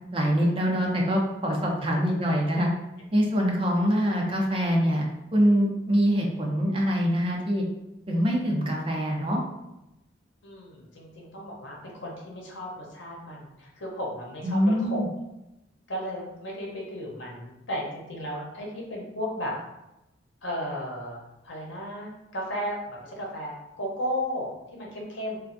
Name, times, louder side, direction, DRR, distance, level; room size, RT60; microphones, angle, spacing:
voice 1, 0.1-2.7 3.1-7.6 8.1-9.4 14.4-15.1, equal, 30° right, -1 dB, 0.5 m, -24 dB
voice 2, 10.4-15.0 15.9-19.5 20.4-21.2 21.4-25.4, equal, 75° left, -3 dB, 0.9 m, -34 dB
3.1 x 2.3 x 2.6 m, 0.92 s
head